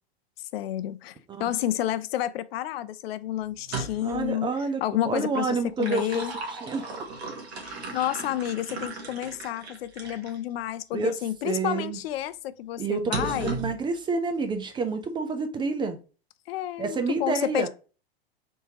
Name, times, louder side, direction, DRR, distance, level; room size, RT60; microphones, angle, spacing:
voice 1, 0.5-4.5 4.8-6.3 7.6-13.6 16.5-17.7, left 12 dB, 70° left, 0.5 m, -30 dB
sound 1, 3.6-4.3 5.5-10.4 11.0-11.1 13.1-13.8, right 3 dB, 85° right, 1.3 m, -36 dB
voice 2, 4.0-6.2 6.6-7.0 7.8-8.0 10.9-11.1 11.4-12.0 12.8-16.0 16.8-17.7, right 4 dB, 15° right, 0.4 m, -29 dB
3.6 x 2.8 x 2.7 m
hypercardioid pair, 115°, 31 cm